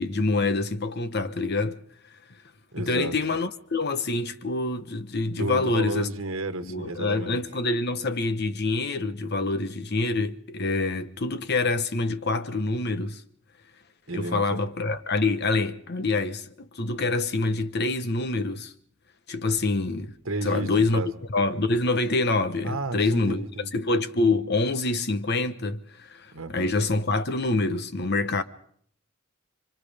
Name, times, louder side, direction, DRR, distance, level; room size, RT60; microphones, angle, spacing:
voice 1, 0.0-1.8 2.8-6.1 6.6-13.2 14.1-18.7 19.3-20.2 20.4-21.0 21.3-23.5 23.7-28.4, left 3 dB, 55° left, 1.1 m, -26 dB
voice 2, 2.7-3.1 5.3-7.4 14.1-14.4 20.2-21.1 22.6-23.7 26.3-26.7, right 2 dB, 80° right, 1.4 m, -32 dB
29.5 x 25.0 x 3.5 m
head